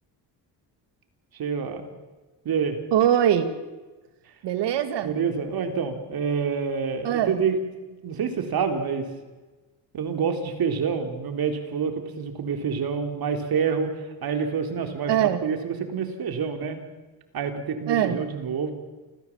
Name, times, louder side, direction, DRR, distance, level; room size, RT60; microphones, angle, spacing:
voice 1, 1.3-1.9 2.5-2.8 4.3-4.4 5.0-7.6 8.0-9.1 9.9-16.8 17.3-18.7, right 6 dB, 55° right, 6 dB, 3.6 m, -27 dB
voice 2, 2.9-3.5 4.4-5.1 7.0-7.4 15.1-15.4 17.9-18.2, right 10 dB, 70° right, 10 dB, 2.3 m, -22 dB
28.5 x 15.0 x 7.4 m, 1.2 s
cardioid pair, 100°, 43 cm